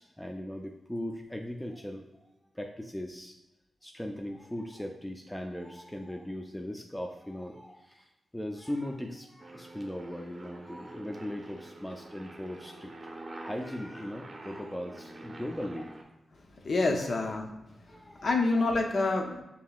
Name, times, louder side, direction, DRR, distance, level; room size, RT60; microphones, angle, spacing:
voice 1, 0.0-2.1 2.5-3.4 3.8-8.1 8.3-12.9 13.4-15.9 17.0-17.3 17.9-18.3, left 1 dB, 10° left, 2 dB, 0.4 m, -39 dB
Aircraft, 9.4-16.0, right 2 dB, 45° right, 0.6 m, -46 dB
voice 2, 16.6-17.5 17.9-19.4, left 3 dB, 60° left, 3 dB, 0.6 m, -27 dB
5.4 x 2.8 x 2.3 m, 0.94 s
cardioid pair, 45°, 0 cm